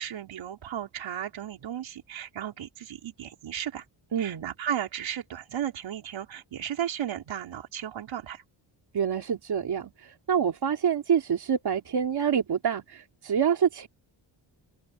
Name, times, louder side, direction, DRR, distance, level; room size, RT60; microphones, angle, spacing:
voice 1, 0.0-3.8 4.2-8.4, right 10 dB, 70° right, 4.5 m, -35 dB
voice 2, 4.1-4.5 8.9-13.9, right 8 dB, 55° right, 3.2 m, -27 dB
cardioid pair, 105°, 47 cm